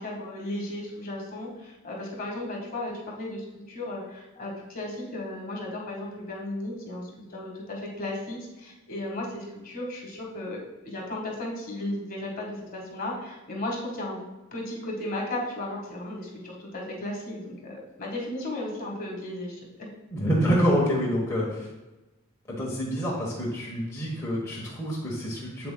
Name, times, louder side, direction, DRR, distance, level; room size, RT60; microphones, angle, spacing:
voice 1, 0.0-14.2 14.5-19.9, left 1 dB, 40° left, -1 dB, 1.7 m, -35 dB
voice 2, 20.1-21.7 22.5-25.7, equal, 15° left, -5 dB, 1.2 m, -27 dB
7.7 x 7.6 x 2.3 m, 1.0 s
head